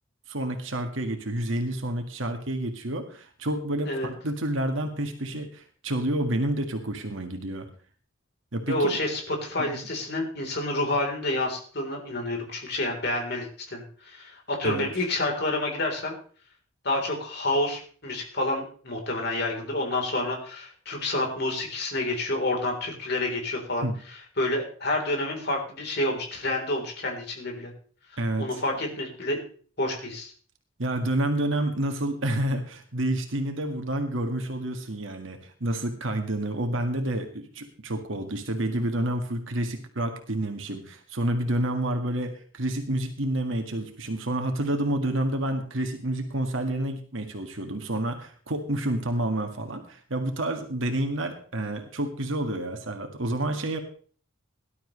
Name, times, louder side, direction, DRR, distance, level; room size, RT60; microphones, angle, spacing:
voice 1, 0.3-7.7 8.5-9.0 9.6-9.8 14.6-14.9 23.8-23.9 28.2-28.5 30.8-53.8, right 1 dB, 65° right, 5 dB, 1.8 m, -29 dB
voice 2, 8.7-16.1 16.8-23.8 24.1-27.7 28.4-29.4 29.8-30.3, left 1 dB, 50° left, 1 dB, 3.8 m, -29 dB
18.5 x 12.0 x 3.2 m, 0.43 s
head